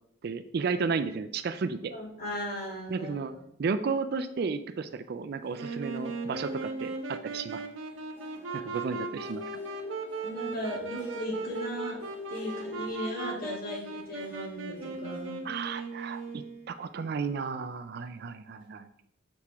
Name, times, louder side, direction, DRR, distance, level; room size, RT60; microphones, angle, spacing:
voice 1, 0.2-1.9 2.9-3.3 3.6-7.6 8.5-9.4 15.4-18.9, right 5 dB, 55° right, 11 dB, 0.4 m, -33 dB
voice 2, 1.9-3.4 10.2-12.0 12.3-15.4, left 1 dB, 50° left, -4 dB, 2.5 m, -37 dB
Harp, 5.2-17.3 17.7-17.8 18.6-18.7, left 2 dB, 25° left, 2.1 m, -55 dB
Wind instrument woodwind instrument, 5.5-16.7, right 3 dB, 90° right, 0.8 m, -38 dB
7.0 x 4.8 x 3.4 m, 0.71 s
head